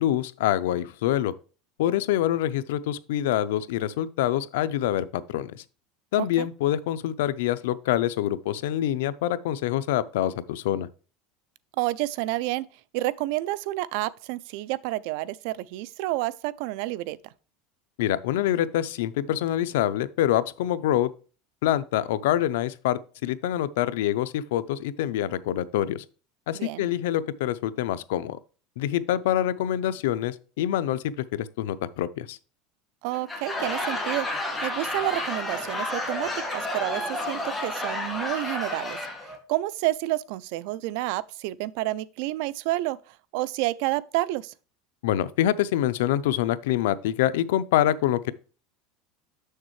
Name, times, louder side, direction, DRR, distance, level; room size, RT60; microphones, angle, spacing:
voice 1, 0.0-1.3 1.8-5.6 6.1-10.9 18.0-21.1 21.6-26.0 26.5-28.4 28.8-32.4 45.0-48.3, left 12 dB, 85° left, 0.5 m, -26 dB
voice 2, 6.2-6.5 11.8-12.7 12.9-17.2 26.5-26.8 33.0-34.3 34.6-37.0 37.3-39.0 39.5-43.0 43.3-44.5, right 17 dB, 65° right, 0.4 m, -29 dB
Laughter / Crowd, 33.1-39.4, left 1 dB, 5° left, 1.8 m, -31 dB
7.2 x 6.5 x 3.1 m
supercardioid pair, 155°, 0 cm